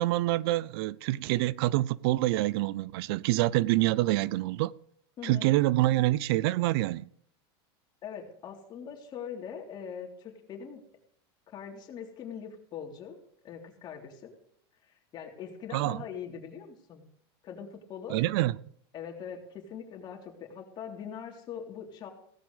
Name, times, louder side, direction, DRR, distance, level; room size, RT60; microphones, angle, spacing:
voice 1, 0.0-4.7 5.2-7.1 15.7-16.0 18.1-18.6, right 17 dB, 70° right, 0.5 m, -26 dB
voice 2, 5.2-5.5 8.0-10.8 11.5-13.2 13.4-14.3 14.9-17.0 17.4-18.2 18.9-22.1, left 7 dB, 35° left, 3.5 m, -42 dB
17.0 x 15.0 x 3.3 m
supercardioid pair, 145°, 14 cm